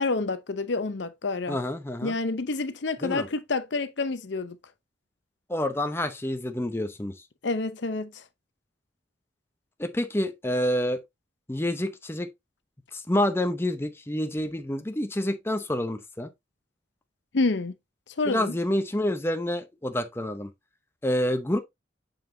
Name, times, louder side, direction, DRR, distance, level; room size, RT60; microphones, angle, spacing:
voice 1, 0.0-1.6 2.0-4.6 7.4-8.2 17.3-17.7 18.2-18.5, left 3 dB, 60° left, 0.7 m, -28 dB
voice 2, 1.5-2.1 3.0-3.3 5.5-7.1 9.8-11.0 11.5-12.3 12.9-16.3 18.3-20.5 21.0-21.6, left 1 dB, 10° left, 0.7 m, -28 dB
6.9 x 5.8 x 2.6 m
head